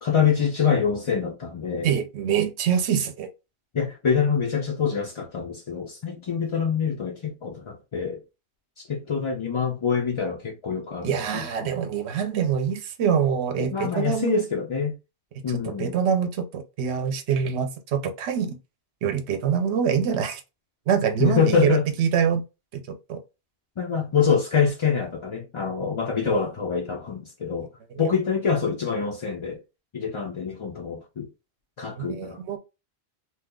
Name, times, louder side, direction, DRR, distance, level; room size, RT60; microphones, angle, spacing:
voice 1, 0.0-1.9 3.7-8.2 8.8-11.7 13.6-15.0 15.4-16.0 21.2-21.8 23.8-27.7 28.0-29.6 29.9-31.3 31.8-32.4, left 6 dB, 45° left, 0.4 m, -25 dB
voice 2, 1.8-3.3 11.0-14.4 15.5-18.6 19.0-20.4 20.9-22.4 22.7-22.8 23.1-23.2 32.0-32.6, right 7 dB, 80° right, 0.9 m, -25 dB
2.8 x 2.3 x 3.6 m
omnidirectional pair, 1.1 m